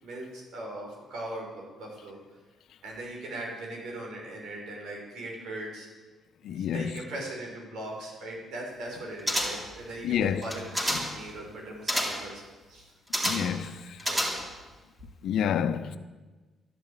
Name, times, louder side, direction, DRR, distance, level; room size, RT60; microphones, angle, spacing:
voice 1, 0.0-2.2 2.8-5.9 6.4-12.4 12.7-12.9 14.1-14.2, right 1 dB, 75° right, 5.6 m, -39 dB
voice 2, 6.4-6.9 10.0-10.4 13.2-14.0 15.2-16.0, left 8 dB, 75° left, 0.9 m, -28 dB
sound 1, 9.3-9.8 10.4-11.2 11.9-12.3 13.1-13.6 14.0-14.7 15.0-15.1, equal, 15° right, 3.7 m, -29 dB
12.0 x 11.5 x 9.0 m
cardioid pair, 90°, 0 cm